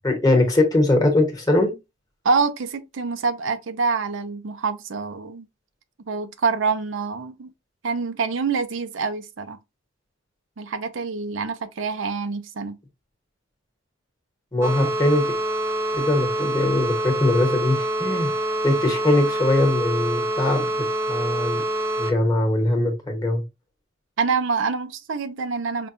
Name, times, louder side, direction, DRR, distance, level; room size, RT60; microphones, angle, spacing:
voice 1, 0.0-1.7 14.5-15.3 15.9-18.3 18.6-21.6 22.0-23.4, left 2 dB, 20° left, 1.1 m, -21 dB
voice 2, 2.2-5.5 6.1-7.5 7.8-9.6 10.6-12.7 24.2-25.9, right 4 dB, 80° right, 0.5 m, -26 dB
sound 1, 14.6-22.1, right 1 dB, 15° right, 0.6 m, -26 dB
5.1 x 2.3 x 2.6 m
head